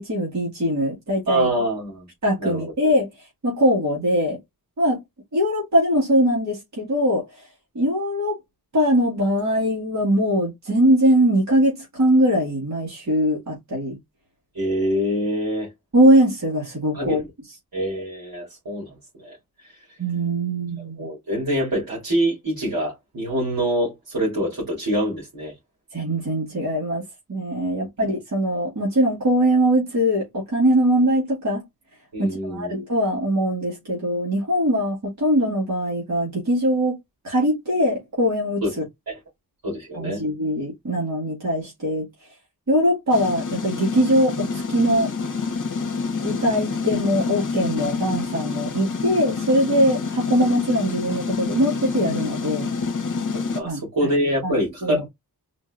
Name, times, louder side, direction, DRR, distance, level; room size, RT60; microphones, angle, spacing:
voice 1, 0.0-1.5 2.2-4.4 4.8-5.0 5.3-7.5 7.8-8.4 8.7-14.0 15.9-17.2 20.0-21.1 25.9-27.0 27.3-31.6 32.2-37.0 37.2-38.6 39.9-42.1 42.7-45.1 46.2-52.7 53.6-53.8 54.4-54.5 54.8-55.0, equal, 45° right, 2.0 m, -21 dB
voice 2, 1.3-2.1 2.4-2.7 14.5-15.7 16.9-17.3 17.7-19.3 21.0-25.5 27.7-27.9 32.1-32.7 38.6-38.7 39.1-39.2 39.6-40.2 53.3-55.1, equal, 65° right, 2.6 m, -25 dB
sound 1, 43.1-53.6, left 4 dB, 55° left, 1.0 m, -27 dB
4.4 x 2.8 x 2.4 m
wide cardioid pair, 115°, 38 cm